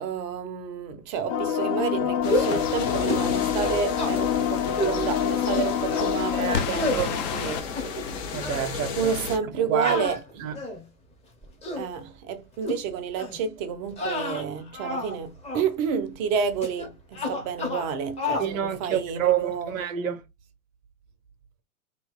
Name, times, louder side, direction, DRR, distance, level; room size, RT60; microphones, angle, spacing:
voice 1, 0.0-7.7 9.0-10.2 11.8-19.7, right 7 dB, 30° right, 0.6 m, -30 dB
sound 1, 1.3-7.6, left 9 dB, 30° left, 0.5 m, -27 dB
sound 2, 2.2-9.4, left 5 dB, 45° left, 0.9 m, -34 dB
sound 3, 2.3-2.6 3.1-3.3 3.6-4.1 4.8-5.0 5.5-6.1 6.7-7.0 7.5-8.1 8.4-8.7 9.8-10.9 11.4-11.9 12.6-12.8 13.2-13.4 13.9-15.2 15.4-15.7 16.6-16.9 17.1-17.9 18.2-18.5, left 1 dB, 15° left, 0.9 m, -30 dB
voice 2, 8.3-9.2 9.4-10.0 10.4-10.6 18.4-20.2, right 9 dB, 65° right, 0.7 m, -28 dB
2.8 x 2.8 x 2.2 m
figure-of-eight pair, 95°, 43 cm